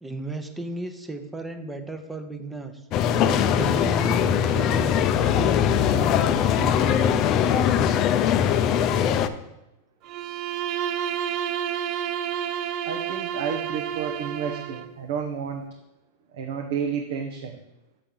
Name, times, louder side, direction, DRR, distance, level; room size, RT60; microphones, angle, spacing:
voice 1, 0.0-2.8 3.2-7.3, right 2 dB, 10° right, 7 dB, 0.7 m, -35 dB
sound 1, 2.9-9.3, left 8 dB, 40° left, 0.4 m, -21 dB
Bowed string instrument, 10.0-15.0, right 9 dB, 45° right, 0.5 m, -30 dB
voice 2, 12.9-15.6 16.3-17.6, right 7 dB, 70° right, 3 dB, 0.8 m, -31 dB
6.8 x 3.7 x 6.1 m, 0.93 s
hypercardioid pair, 130°, 0 cm